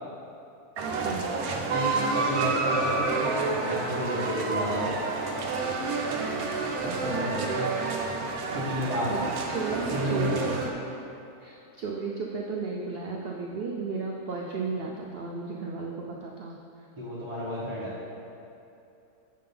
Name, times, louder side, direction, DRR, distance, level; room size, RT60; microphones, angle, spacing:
sound 1, 0.8-10.7, right 3 dB, 70° right, 1.1 m, -29 dB
voice 1, 1.4-4.9 6.8-7.6 8.5-9.1 9.7-10.5 17.0-17.9, equal, 20° right, -11 dB, 1.2 m, -32 dB
voice 2, 6.9-7.5 9.1-10.8 11.4-16.5, right 4 dB, 90° right, -1 dB, 0.5 m, -34 dB
7.6 x 3.8 x 5.4 m, 2.7 s
omnidirectional pair, 1.6 m